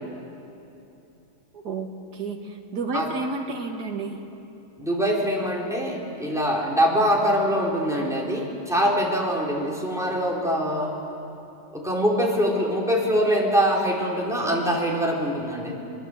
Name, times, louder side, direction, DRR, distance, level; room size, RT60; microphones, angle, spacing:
voice 1, 1.5-4.2, right 3 dB, 65° right, 2 dB, 2.5 m, -31 dB
voice 2, 4.8-10.9 11.7-15.8, equal, ahead, -3 dB, 4.0 m, -23 dB
25.5 x 21.5 x 8.0 m, 2.8 s
omnidirectional pair, 1.9 m